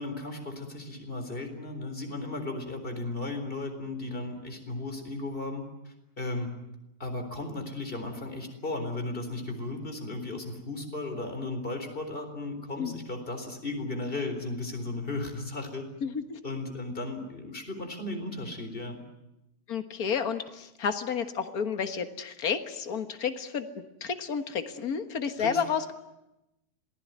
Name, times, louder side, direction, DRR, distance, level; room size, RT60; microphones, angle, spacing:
voice 1, 0.0-6.5 7.0-15.8 16.4-19.0 25.4-25.6, left 2 dB, 35° left, 6 dB, 4.3 m, -35 dB
voice 2, 16.0-16.4 19.7-25.9, left 6 dB, 70° left, 8 dB, 2.0 m, -31 dB
27.0 x 19.5 x 9.4 m, 0.90 s
omnidirectional pair, 1.6 m